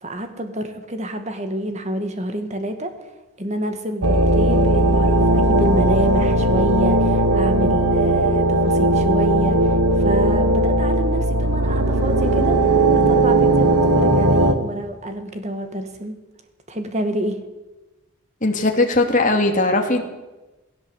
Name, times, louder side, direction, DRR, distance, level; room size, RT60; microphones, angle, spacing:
voice 1, 0.0-2.9 3.4-12.6 12.9-16.1 16.7-17.4, right 1 dB, 30° right, 7 dB, 2.0 m, -27 dB
sound 1, 4.0-14.5, right 1 dB, 85° right, 1.9 m, -17 dB
voice 2, 18.4-20.0, left 2 dB, 35° left, 3 dB, 2.6 m, -19 dB
19.0 x 17.0 x 8.2 m, 1.1 s
head